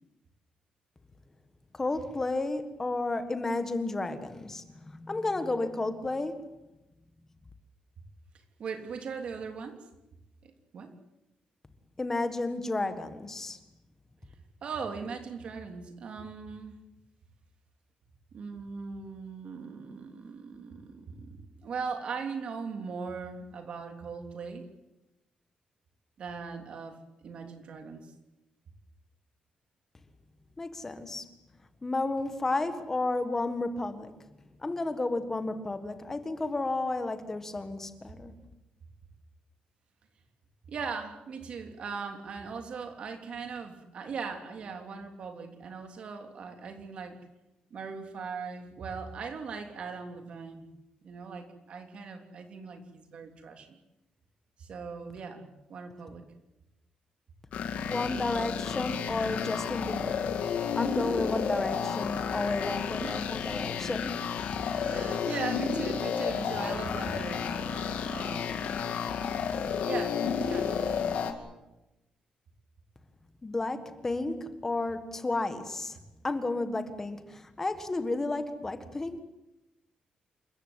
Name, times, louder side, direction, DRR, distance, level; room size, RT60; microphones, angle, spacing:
voice 1, 1.7-6.5 12.0-13.6 30.6-31.3 31.8-34.2 34.6-38.3 57.9-60.3 60.7-64.2 73.4-76.0 76.2-79.2, left 2 dB, 15° left, 9 dB, 1.7 m, -32 dB
voice 2, 8.6-9.8 10.4-10.9 14.6-16.8 18.3-24.7 26.2-28.1 40.7-47.2 47.7-50.7 51.0-53.8 54.6-56.2 63.0-63.3 64.8-68.6 69.8-71.0, right 5 dB, 50° right, 5 dB, 3.4 m, -39 dB
sound 1, 57.5-71.3, left 7 dB, 80° left, 2.7 m, -31 dB
28.0 x 15.0 x 9.8 m, 0.97 s
wide cardioid pair, 175°, 2 cm